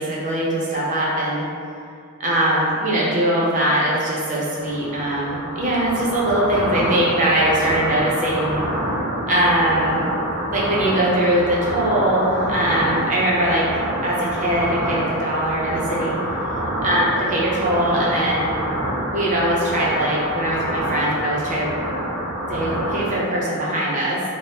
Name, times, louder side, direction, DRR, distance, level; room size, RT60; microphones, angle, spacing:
voice 1, 0.0-1.4 2.2-8.6 9.3-10.0 10.5-13.6 14.0-16.1 16.8-18.5 19.1-21.7 22.5-24.2, right 1 dB, 35° right, -5 dB, 0.6 m, -21 dB
sound 1, 4.5-23.1, right 1 dB, 90° right, 1.2 m, -27 dB
2.6 x 2.0 x 3.4 m, 2.3 s
head